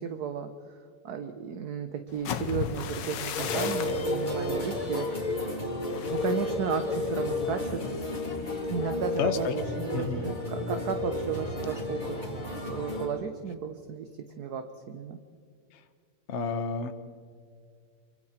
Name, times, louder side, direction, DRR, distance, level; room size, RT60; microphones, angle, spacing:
voice 1, 0.0-5.6 6.1-7.9 8.7-12.2 12.7-15.2, right 7 dB, 55° right, 8 dB, 1.4 m, -34 dB
sound 1, 2.1-9.9 10.3-10.6 11.0-11.4, left 7 dB, 65° left, 1.6 m, -39 dB
sound 2, 3.3-13.1, left 2 dB, 20° left, 3.6 m, -32 dB
voice 2, 9.2-9.5 9.9-10.2 16.3-16.9, left 5 dB, 40° left, 10 dB, 1.3 m, -30 dB
27.5 x 24.5 x 4.4 m, 2.2 s
omnidirectional pair, 2.3 m